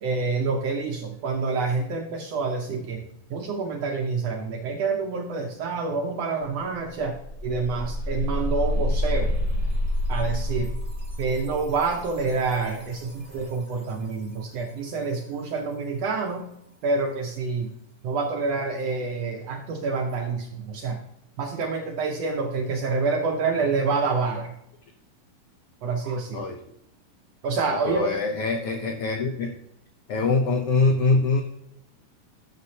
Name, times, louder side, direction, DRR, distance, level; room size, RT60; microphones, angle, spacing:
voice 1, 0.0-3.0 3.3-9.4 10.1-10.8 11.2-16.5 16.8-17.7 18.0-21.0 21.4-24.6 25.8-26.5 27.4-28.1, right 4 dB, 75° right, 3 dB, 1.5 m, -27 dB
sound 1, 6.4-6.5 6.8-13.6, left 1 dB, 35° right, 0.5 m, -28 dB
voice 2, 27.7-29.5 30.1-31.4, left 3 dB, 85° left, 3 dB, 1.2 m, -23 dB
11.5 x 6.6 x 2.8 m, 0.79 s
omnidirectional pair, 3.6 m